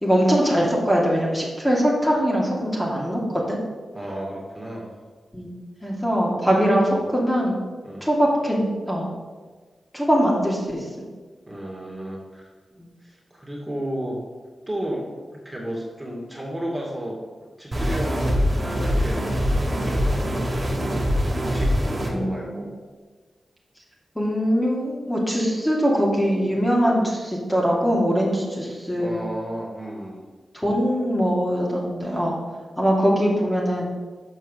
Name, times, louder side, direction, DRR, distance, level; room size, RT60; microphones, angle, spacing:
voice 1, 0.0-3.6 5.3-5.6 5.8-7.6 8.0-9.1 9.9-10.9 22.1-22.6 24.2-29.2 30.5-32.4 32.8-33.9, equal, 10° left, -4 dB, 2.6 m, -22 dB
voice 2, 3.9-4.9 7.8-8.1 11.5-12.5 13.0-14.2 14.7-15.1 15.4-17.2 17.6-19.3 19.7-20.2 21.4-22.7 29.0-30.2, right 1 dB, 15° right, -3 dB, 2.6 m, -33 dB
sound 1, 17.7-22.1, equal, 30° right, 2.4 m, -23 dB
7.2 x 5.4 x 6.7 m, 1.4 s
cardioid pair, 45°, 0 cm